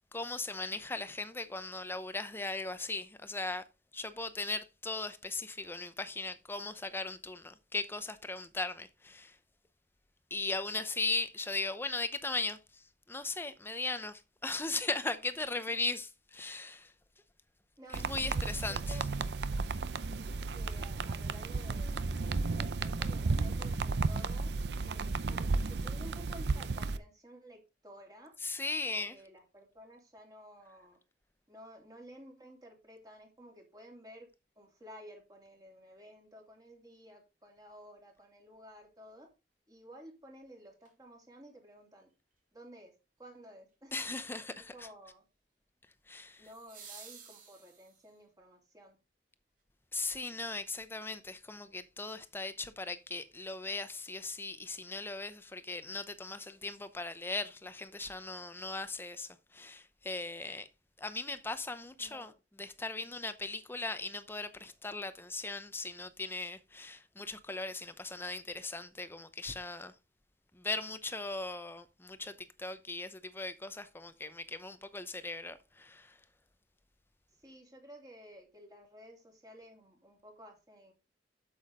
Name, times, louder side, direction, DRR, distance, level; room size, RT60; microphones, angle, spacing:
voice 1, 0.1-3.6 3.9-9.4 10.3-16.9 17.9-19.0 28.4-29.2 43.9-44.9 46.1-46.5 49.9-60.7 61.0-62.3 62.6-69.9 70.5-76.2, left 3 dB, 15° left, 0.7 m, -38 dB
voice 2, 17.8-19.4 20.5-24.5 24.8-28.3 28.9-31.0 31.5-34.3 34.6-39.3 39.7-42.1 42.5-42.9 43.2-44.0 44.7-45.2 46.4-49.0 62.0-62.3 63.0-63.1 77.4-80.9, equal, 20° right, 2.9 m, -53 dB
sound 1, 17.9-27.0, right 3 dB, 70° right, 0.6 m, -33 dB
sound 2, 40.8-40.9 46.4-48.2 50.4-50.5, right 6 dB, 50° right, 2.7 m, -52 dB
8.3 x 7.2 x 3.7 m
head